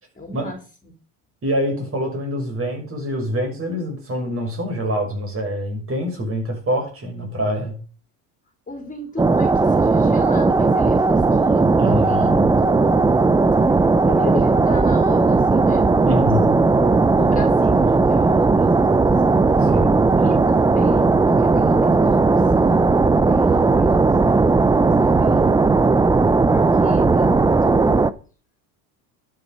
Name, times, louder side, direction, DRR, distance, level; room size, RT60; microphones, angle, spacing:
voice 1, 0.2-0.9 8.7-13.2 13.7-13.8 14.0-16.3 16.8-19.2 19.5-19.7 20.2-25.6 26.5-28.1, left 1 dB, 15° left, 3.9 m, -35 dB
voice 2, 1.4-7.8 11.8-12.6 16.1-16.6 19.6-20.0, equal, 30° right, 6.1 m, -25 dB
sound 1, 9.2-28.1, right 3 dB, 10° right, 0.5 m, -16 dB
12.0 x 7.8 x 5.4 m
supercardioid pair, 95°, 46 cm